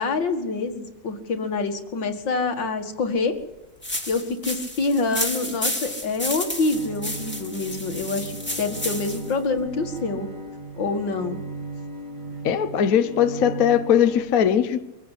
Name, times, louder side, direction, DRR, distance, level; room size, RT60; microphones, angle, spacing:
voice 1, 0.0-3.4 4.1-8.3 8.6-10.3 10.8-11.4, left 3 dB, 80° left, 6 dB, 2.6 m, -26 dB
sound 1, 3.8-9.3, left 1 dB, 5° left, 2.5 m, -31 dB
Bowed string instrument, 6.7-14.2, right 2 dB, 45° right, 3.4 m, -37 dB
voice 2, 12.4-14.8, left 9 dB, 55° left, 10 dB, 1.3 m, -20 dB
24.0 x 15.5 x 8.2 m, 0.98 s
omnidirectional pair, 2.0 m